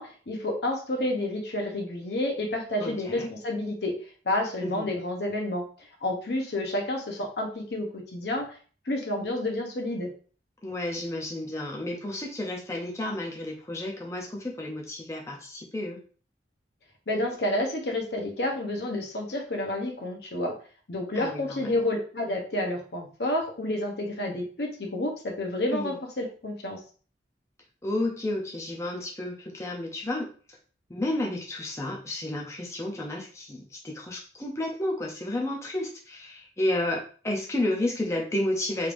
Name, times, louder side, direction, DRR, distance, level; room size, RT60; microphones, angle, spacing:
voice 1, 0.0-3.9 4.3-8.6 8.9-10.1 17.1-20.5 20.9-26.8, left 1 dB, 65° left, 2 dB, 0.8 m, -30 dB
voice 2, 2.8-3.3 4.6-4.9 10.6-16.0 21.1-21.7 25.7-26.0 27.8-30.3 30.9-38.9, left 1 dB, 15° left, -1 dB, 0.5 m, -31 dB
3.3 x 3.2 x 2.5 m, 0.40 s
head